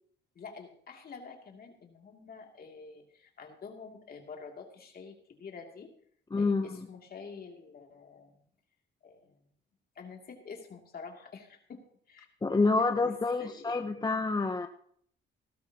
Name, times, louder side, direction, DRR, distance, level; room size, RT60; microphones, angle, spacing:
voice 1, 0.3-5.9 6.4-8.4 9.0-9.5 10.0-11.8 12.1-12.3 12.8-13.1 13.4-13.7, left 5 dB, 50° left, 2 dB, 2.6 m, -47 dB
voice 2, 6.3-6.9 12.4-14.7, left 3 dB, 20° left, 6 dB, 0.8 m, -28 dB
17.5 x 13.0 x 2.9 m, 0.63 s
cardioid pair, 90°, 20 cm